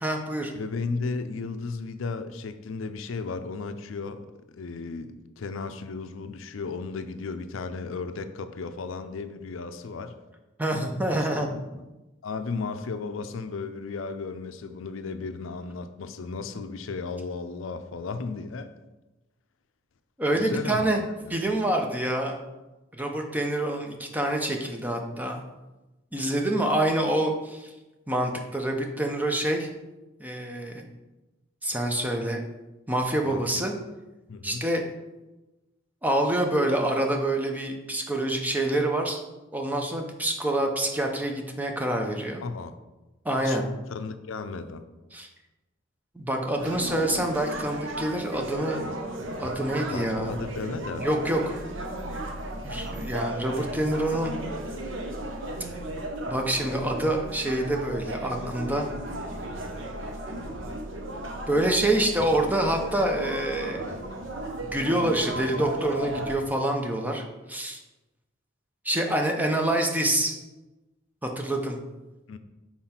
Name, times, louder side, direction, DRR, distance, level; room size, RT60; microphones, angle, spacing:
voice 1, 0.0-0.5 10.6-11.5 20.2-21.0 21.3-22.4 22.9-25.4 26.1-27.7 28.1-29.7 30.2-30.8 31.6-32.4 32.9-33.7 34.4-34.8 36.0-39.2 39.5-42.4 43.2-43.7 45.1-45.3 46.1-48.8 49.4-50.4 51.0-51.6 52.6-54.4 56.3-58.9 61.5-63.9 64.6-67.8 68.8-70.3 71.2-71.8, right 1 dB, 10° right, 2 dB, 0.6 m, -26 dB
voice 2, 0.5-4.3 4.5-10.2 11.1-11.8 12.2-18.7 20.3-21.4 33.2-33.7 34.3-34.7 42.4-42.7 43.4-43.6 43.9-44.8 49.9-51.1 72.3-72.4, left 4 dB, 80° left, 10 dB, 0.5 m, -35 dB
sound 1, 46.6-66.4, right 1 dB, 70° right, 0.8 m, -35 dB
5.7 x 4.4 x 4.3 m, 1.1 s
head